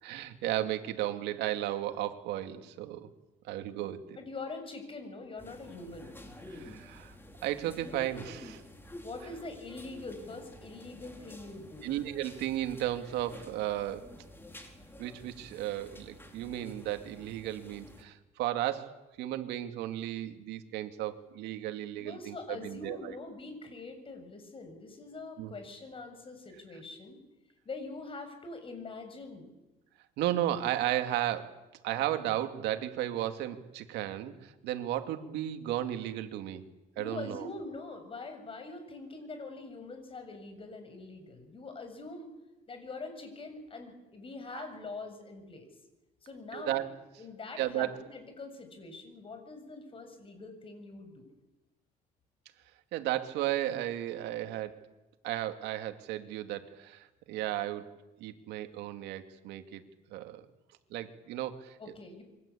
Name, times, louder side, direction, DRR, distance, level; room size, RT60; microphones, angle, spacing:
voice 1, 0.0-3.1 3.5-4.1 6.5-7.2 7.4-8.6 11.8-14.1 15.0-23.1 25.4-25.5 30.2-31.6 31.8-36.6 37.0-37.5 44.5-44.6 46.5-46.9 47.6-48.0 52.9-54.8 55.2-57.9 58.2-59.8 60.1-60.4 60.9-61.8, right 13 dB, 90° right, 7 dB, 2.4 m, -34 dB
voice 2, 4.2-6.1 9.0-11.9 22.0-27.2 27.7-29.5 37.0-42.3 42.7-45.7 46.2-46.8 47.2-51.3 61.8-62.2, left 3 dB, 30° left, 7 dB, 7.3 m, -44 dB
sound 1, 5.4-18.0, left 1 dB, 15° left, 4.4 m, -50 dB
28.0 x 23.5 x 8.6 m, 1.0 s
cardioid pair, 110°, 17 cm